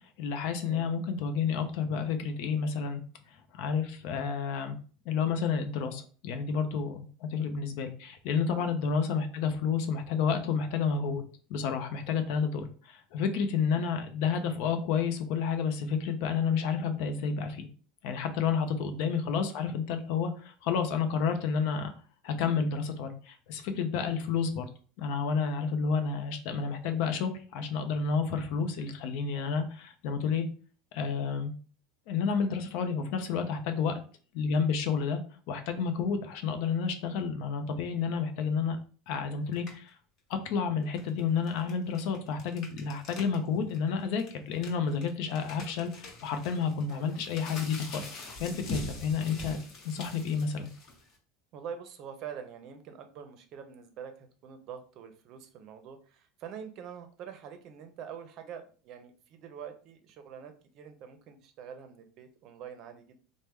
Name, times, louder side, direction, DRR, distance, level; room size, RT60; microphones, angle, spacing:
voice 1, 0.2-3.0 3.5-4.8 5.1-11.2 11.5-17.7 18.0-21.9 22.2-24.7 25.0-30.5 30.9-31.5 32.1-34.0 34.3-35.2 35.5-38.8 39.1-40.0 40.3-48.1 48.4-49.6 49.8-50.7, left 6 dB, 65° left, 7 dB, 0.6 m, -30 dB
voice 2, 18.6-19.1 33.7-34.0 46.9-47.2 51.5-63.2, right 7 dB, 55° right, 8 dB, 0.6 m, -45 dB
sound 1, 39.5-39.9 40.8-43.4 43.7-43.8 44.2-51.1, left 1 dB, 50° left, 1.1 m, -43 dB
3.0 x 2.1 x 3.4 m, 0.40 s
supercardioid pair, 110°, 0 cm